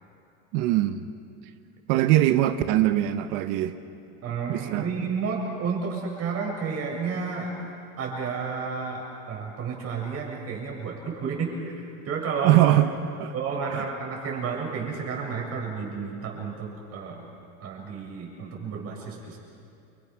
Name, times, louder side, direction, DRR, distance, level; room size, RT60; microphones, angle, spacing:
voice 1, 0.5-1.1 1.9-3.7 4.5-5.0 12.4-12.9 13.2-13.3 13.7-13.8, right 14 dB, 60° right, 9 dB, 1.1 m, -22 dB
voice 2, 4.2-7.6 8.0-12.6 13.3-17.2 17.6-19.4, right 5 dB, 40° right, -2 dB, 7.6 m, -31 dB
30.0 x 24.5 x 6.4 m, 2.5 s
supercardioid pair, 140°, 37 cm